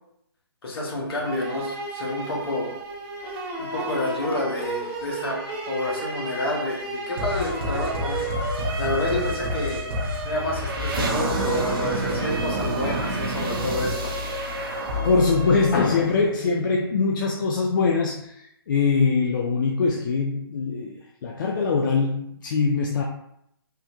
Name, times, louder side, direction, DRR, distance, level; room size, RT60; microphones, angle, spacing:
voice 1, 0.6-2.7 3.6-5.4 5.7-9.8 10.2-14.1, left 2 dB, 65° left, -3 dB, 1.2 m, -29 dB
sound 1, 1.2-16.3, right 2 dB, 25° right, 0.5 m, -33 dB
sound 2, 7.2-16.5, equal, 60° right, 0.6 m, -29 dB
voice 2, 15.0-23.0, left 4 dB, 50° left, 0 dB, 0.4 m, -23 dB
3.6 x 2.1 x 2.9 m, 0.76 s
hypercardioid pair, 145°, 13 cm